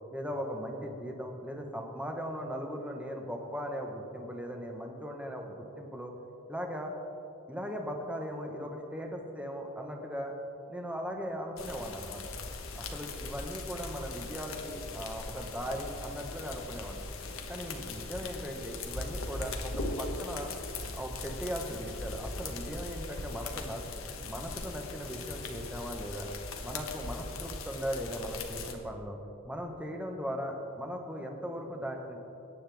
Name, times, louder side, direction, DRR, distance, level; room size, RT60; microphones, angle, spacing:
voice 1, 0.1-6.1 6.5-6.9 7.5-10.3 10.7-12.2 12.7-17.0 17.5-20.5 20.9-23.8 24.2-26.3 26.6-29.2 29.4-32.2, equal, 5° right, 2 dB, 1.3 m, -38 dB
sound 1, 11.6-28.7, left 3 dB, 90° left, 1.3 m, -40 dB
21.5 x 9.7 x 3.6 m, 2.9 s
head